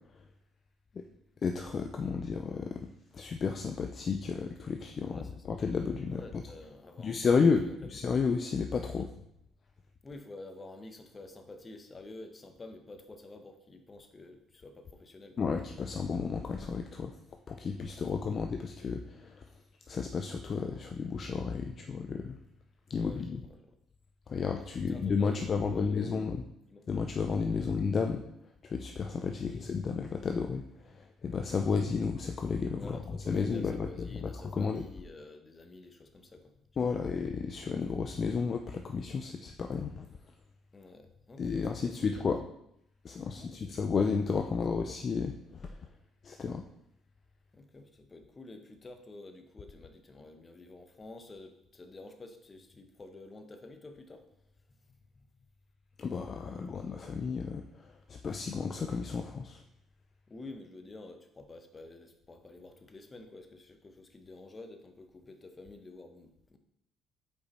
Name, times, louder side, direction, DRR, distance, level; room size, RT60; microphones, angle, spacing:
voice 1, 1.4-6.2 7.0-7.6 7.9-9.1 15.4-17.1 17.5-19.5 19.9-22.4 22.9-23.4 24.3-26.4 26.9-28.2 28.6-34.8 36.8-40.1 41.4-42.4 43.0-45.8 46.2-46.7 56.0-59.6, left 5 dB, 40° left, 5 dB, 0.4 m, -32 dB
voice 2, 5.0-5.5 6.1-7.9 8.9-9.1 10.0-15.4 18.0-18.4 22.9-23.8 24.6-26.2 26.7-26.9 27.5-27.7 29.3-29.6 32.8-37.1 40.7-42.3 43.3-43.8 44.4-44.6 47.5-54.3 54.7-54.8 55.1-55.3 56.5-56.8 60.3-66.6, left 2 dB, 25° left, 6 dB, 0.8 m, -50 dB
5.2 x 4.6 x 4.1 m, 0.79 s
cardioid pair, 95°, 0 cm